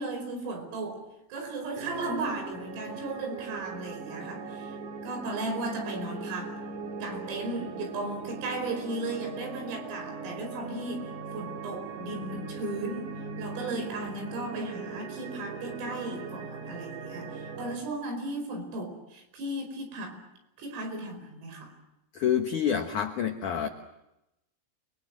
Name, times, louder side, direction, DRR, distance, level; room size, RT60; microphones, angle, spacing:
voice 1, 0.0-4.8 5.0-6.6 7.0-13.1 13.4-20.2 20.6-21.7, right 2 dB, 80° right, 5 dB, 7.7 m, -36 dB
sound 1, 1.7-17.8, right 4 dB, 50° right, 2.8 m, -39 dB
voice 2, 22.1-23.7, left 8 dB, 85° left, 4 dB, 1.7 m, -27 dB
29.5 x 23.0 x 7.7 m, 0.89 s
omnidirectional pair, 5.8 m